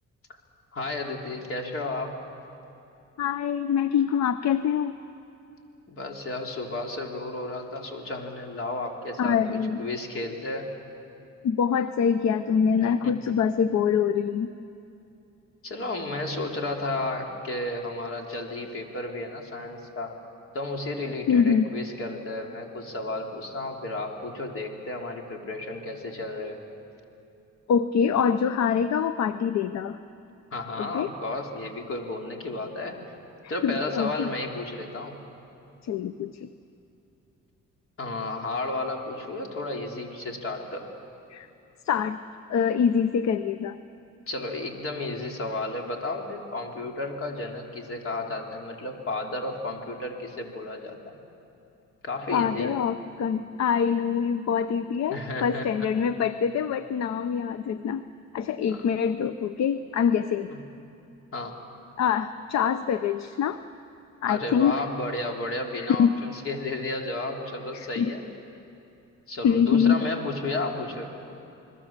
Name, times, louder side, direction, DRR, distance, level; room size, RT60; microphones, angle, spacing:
voice 1, 0.7-2.2 5.9-10.8 12.7-13.1 15.6-20.2 20.5-26.6 30.5-33.1 33.5-35.2 38.0-40.9 44.3-51.2 52.0-52.8 55.1-55.9 58.7-58.8 60.5-60.6 61.3-61.6 64.3-68.2 69.3-71.1, left 2 dB, 45° left, 2 dB, 3.5 m, -33 dB
voice 2, 3.2-4.9 9.2-9.8 11.4-14.5 21.3-21.7 27.7-30.0 30.8-31.1 33.6-34.3 35.8-36.5 41.3-41.5 41.8-42.2 42.5-43.8 52.3-58.0 58.3-60.5 62.0-63.6 64.2-64.7 65.8-66.1 67.7-68.1 69.4-70.0, left 7 dB, 60° left, 12 dB, 0.8 m, -24 dB
29.0 x 21.0 x 7.5 m, 2.8 s
cardioid pair, 90°, 30 cm